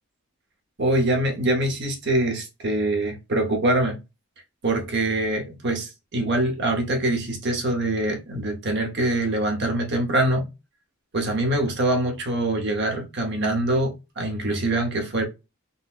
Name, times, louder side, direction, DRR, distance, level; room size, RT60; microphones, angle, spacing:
voice 1, 0.8-4.0 4.6-10.5 11.1-15.2, right 1 dB, 50° right, 0.8 m, -24 dB
3.9 x 2.2 x 2.4 m
head